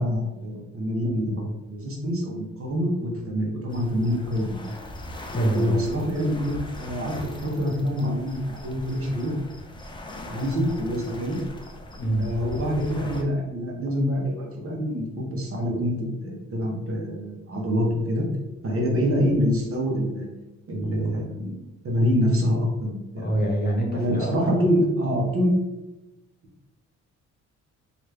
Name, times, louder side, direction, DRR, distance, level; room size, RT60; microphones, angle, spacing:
voice 1, 0.0-4.6 5.4-7.1 7.4-9.3 10.3-11.4 12.2-18.2 18.6-20.3 20.7-21.5 21.8-23.3 23.9-25.5, equal, 45° right, -1 dB, 0.9 m, -26 dB
sound 1, 3.7-13.2, left 1 dB, 15° left, 0.4 m, -40 dB
voice 2, 5.3-5.8 12.0-12.3 23.1-24.3, right 1 dB, 30° left, -1 dB, 1.0 m, -25 dB
3.1 x 2.5 x 3.2 m, 1.0 s
cardioid pair, 90°, 30 cm